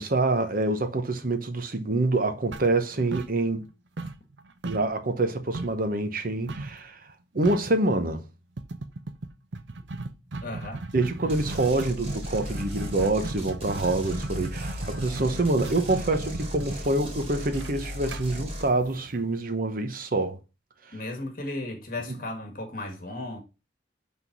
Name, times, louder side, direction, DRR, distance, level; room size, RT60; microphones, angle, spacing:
voice 1, 0.0-3.7 4.6-7.0 7.3-8.2 10.9-20.4 22.1-22.2, right 2 dB, 50° right, 0.9 m, -26 dB
sound 1, 2.5-3.7 4.0-5.9 6.5-6.8 7.1-7.2 7.4-7.8 8.6-19.4, right 2 dB, 85° right, 0.7 m, -36 dB
voice 2, 10.4-10.9 20.9-23.4, left 2 dB, 50° left, 1.8 m, -35 dB
sound 2, 11.3-18.7, left 1 dB, 35° right, 2.4 m, -37 dB
6.1 x 3.7 x 5.9 m
head